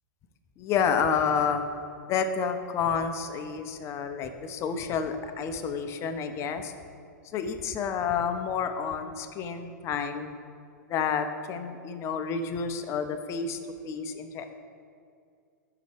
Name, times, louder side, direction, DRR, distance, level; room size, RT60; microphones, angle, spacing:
voice 1, 0.6-1.7 2.1-6.7 7.3-10.4 10.9-14.5, left 6 dB, 30° left, 8 dB, 0.4 m, -29 dB
5.7 x 4.0 x 4.7 m, 2.3 s
hypercardioid pair, 110°, 10 cm